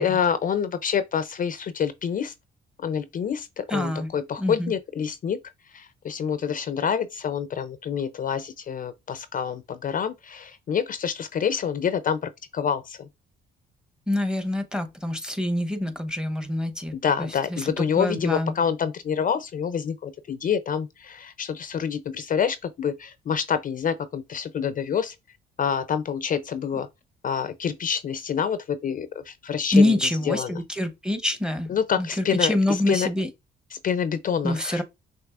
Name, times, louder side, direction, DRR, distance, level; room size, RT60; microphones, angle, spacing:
voice 1, 0.0-2.3 2.8-5.4 5.7-13.1 16.9-25.2 25.6-26.9 27.2-29.9 30.3-30.5 31.7-33.1 33.7-34.8, left 7 dB, 45° left, 0.4 m, -27 dB
voice 2, 3.7-4.1 4.4-4.7 14.1-18.5 29.7-31.7 32.0-33.3 34.4-34.8, left 1 dB, 5° right, 0.8 m, -25 dB
6.0 x 2.8 x 2.4 m
cardioid pair, 90°, 20 cm